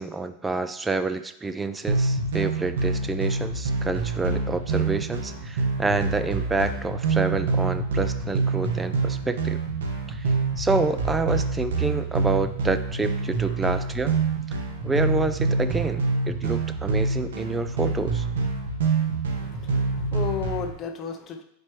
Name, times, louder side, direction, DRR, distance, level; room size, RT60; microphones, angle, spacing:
voice 1, 0.0-9.6 10.1-10.3 10.6-14.2 14.5-14.6 14.8-18.2, right 3 dB, 10° right, 11 dB, 0.3 m, -28 dB
sound 1, 1.9-20.7, right 3 dB, 90° right, 1.4 m, -26 dB
voice 2, 19.4-21.4, left 7 dB, 25° left, 4 dB, 0.6 m, -33 dB
9.2 x 4.5 x 3.1 m, 0.76 s
supercardioid pair, 150°, 0 cm